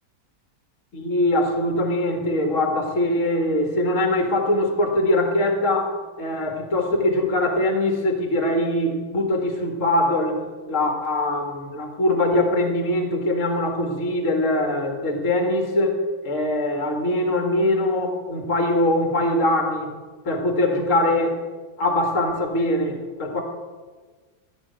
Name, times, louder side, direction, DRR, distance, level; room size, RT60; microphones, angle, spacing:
voice 1, 0.9-10.4 10.7-16.0 16.2-19.9 20.2-21.4 21.8-23.4, left 1 dB, 40° left, 3 dB, 2.2 m, -22 dB
14.0 x 6.2 x 9.3 m, 1.4 s
omnidirectional pair, 2.2 m